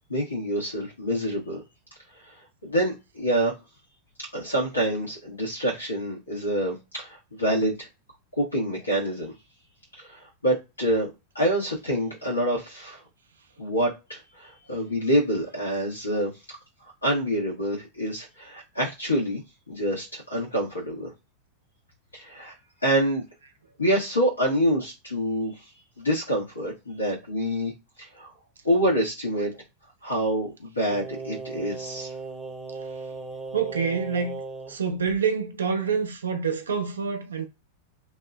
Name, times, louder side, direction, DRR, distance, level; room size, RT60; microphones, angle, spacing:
voice 1, 0.1-1.6 2.6-3.5 4.3-7.9 8.4-9.3 10.0-11.1 11.3-13.0 13.6-16.3 17.0-19.4 19.7-21.1 22.1-22.5 22.8-23.2 23.8-25.5 26.0-27.7 28.0-28.3 28.6-29.6 30.0-32.1, equal, 80° left, 1.1 m, -26 dB
Singing, 30.9-34.8 35.1-35.2, right 4 dB, 10° right, 0.8 m, -37 dB
voice 2, 33.5-34.4 34.7-37.5, right 6 dB, 70° right, 0.5 m, -27 dB
2.7 x 2.5 x 2.2 m
figure-of-eight pair, 90°, 0 cm